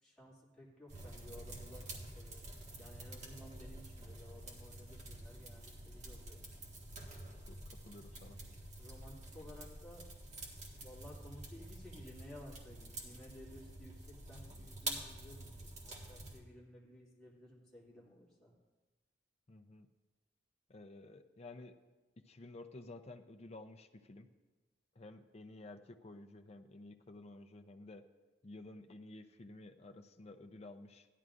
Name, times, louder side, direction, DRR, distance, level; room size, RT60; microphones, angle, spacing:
voice 1, 0.0-2.5 2.8-6.4 8.8-10.1 10.8-18.5, left 1 dB, 5° left, -7 dB, 2.4 m, -55 dB
sound 1, 0.9-16.4, right 1 dB, 40° right, 1.5 m, -48 dB
voice 2, 7.5-8.4 19.5-19.9 20.7-21.8 22.2-24.3 25.0-28.0 28.4-31.1, left 2 dB, 35° left, 6 dB, 0.5 m, -53 dB
15.0 x 11.0 x 2.5 m, 1.2 s
head